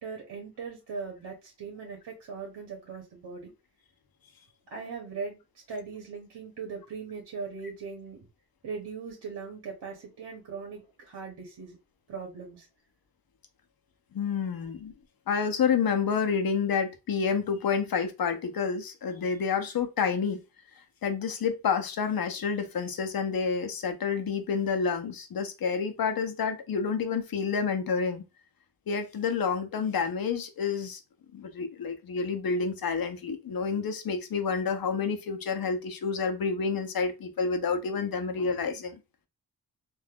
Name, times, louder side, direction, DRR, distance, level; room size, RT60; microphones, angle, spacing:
voice 1, 0.0-3.5 4.7-5.4 5.7-8.3 8.6-11.8 12.1-12.7, right 5 dB, 75° right, 1.0 m, -39 dB
voice 2, 14.1-14.9 15.3-20.4 21.0-28.2 28.9-31.0 31.3-39.0, left 5 dB, 60° left, 0.7 m, -29 dB
3.5 x 2.5 x 2.3 m
wide cardioid pair, 90°, 40 cm